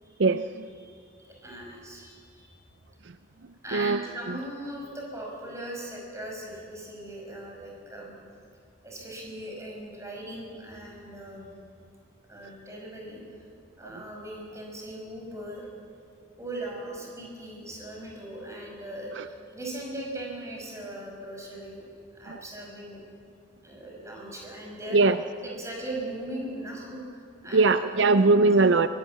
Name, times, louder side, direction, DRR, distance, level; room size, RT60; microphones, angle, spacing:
voice 1, 0.2-0.7 3.7-4.0 19.2-19.3 22.3-22.4 24.9-25.2 27.5-28.9, right 3 dB, 70° right, 11 dB, 0.6 m, -21 dB
voice 2, 1.3-2.5 3.6-8.1 8.8-11.5 12.3-13.2 13.8-15.7 16.4-21.8 22.1-23.0 23.6-25.0 25.4-28.3, right 1 dB, 15° right, -1 dB, 5.4 m, -39 dB
24.0 x 18.5 x 8.2 m, 2.2 s
head